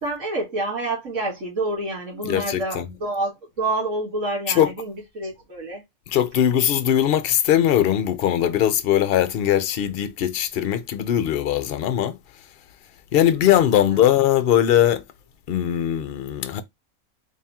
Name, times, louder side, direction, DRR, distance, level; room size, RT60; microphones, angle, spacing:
voice 1, 0.0-5.8 13.7-14.1, right 2 dB, 60° right, 1.7 m, -28 dB
voice 2, 2.2-2.9 4.5-4.7 6.1-12.2 13.1-15.0 15.5-16.6, left 11 dB, 55° left, 0.6 m, -20 dB
3.5 x 3.4 x 2.8 m
omnidirectional pair, 1.5 m